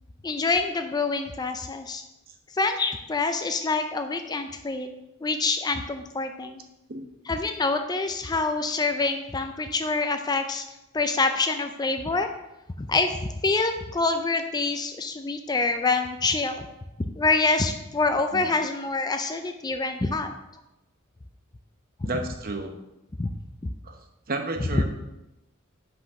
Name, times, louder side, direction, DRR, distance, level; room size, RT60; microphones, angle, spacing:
voice 1, 0.2-2.0 2.5-4.9 5.2-6.6 7.3-10.6 10.9-12.3 12.8-16.7 17.2-20.3 22.0-22.1 23.2-23.3 23.6-23.7, left 3 dB, 20° left, 7 dB, 0.4 m, -26 dB
voice 2, 22.0-22.8 23.8-24.0 24.3-24.8, right 2 dB, 45° right, 5 dB, 0.9 m, -31 dB
6.1 x 5.2 x 5.6 m, 0.93 s
head